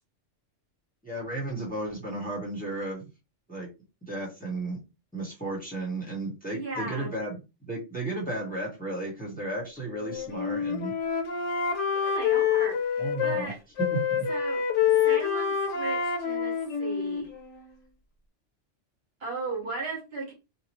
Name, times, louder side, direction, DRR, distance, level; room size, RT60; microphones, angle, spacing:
voice 1, 1.0-3.1 3.5-3.7 4.1-4.8 5.1-7.4 7.7-10.9 13.0-13.5 13.8-14.3, right 2 dB, 10° left, -4 dB, 1.1 m, -33 dB
voice 2, 6.5-7.1 11.9-13.6 14.3-14.6 15.0-17.3 19.2-20.3, right 3 dB, 60° right, -2 dB, 1.4 m, -36 dB
Wind instrument woodwind instrument, 9.9-13.4 13.8-17.8, left 7 dB, 80° left, 1.0 m, -27 dB
2.8 x 2.2 x 3.0 m, 0.27 s
omnidirectional pair, 1.2 m